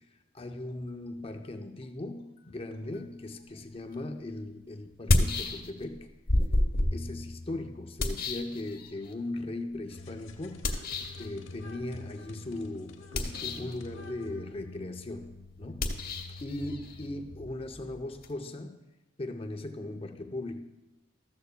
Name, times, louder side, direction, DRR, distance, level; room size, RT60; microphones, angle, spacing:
voice 1, 0.3-6.1 6.9-10.7 11.2-15.3 15.6-16.1 16.4-18.8 19.2-20.6, left 2 dB, 30° left, 0.6 m, -38 dB
sound 1, 3.9-4.0 4.9-6.0 6.3-9.1 10.6-11.3 13.0-13.8 15.7-18.3, left 1 dB, 45° left, 0.9 m, -30 dB
sound 2, 9.9-17.5, left 2 dB, 75° left, 0.8 m, -47 dB
13.5 x 13.5 x 2.2 m
head